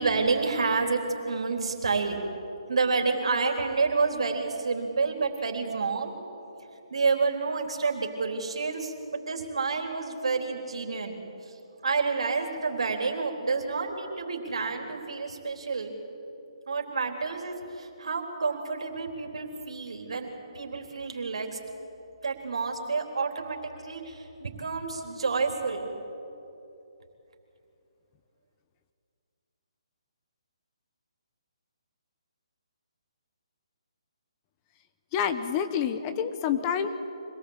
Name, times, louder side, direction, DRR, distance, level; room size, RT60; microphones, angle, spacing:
voice 1, 0.0-2.2 2.7-6.1 6.9-11.2 11.5-11.6 11.8-15.9 16.7-21.6 22.2-25.9, right 4 dB, 70° right, 3 dB, 3.7 m, -29 dB
voice 2, 35.1-37.0, left 8 dB, 25° left, 9 dB, 1.2 m, -28 dB
25.0 x 18.5 x 8.3 m, 2.9 s
hypercardioid pair, 145°, 3 cm